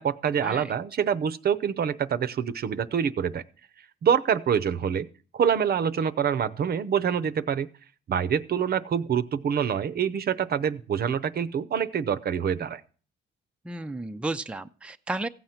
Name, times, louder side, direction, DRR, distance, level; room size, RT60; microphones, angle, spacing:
voice 1, 0.0-3.4 4.0-5.1 5.3-7.7 8.1-12.8, right 8 dB, 50° right, 12 dB, 0.7 m, -26 dB
voice 2, 13.7-15.3, right 2 dB, 5° right, 8 dB, 0.5 m, -33 dB
15.5 x 7.8 x 5.8 m, 0.41 s
cardioid pair, 90°, 20 cm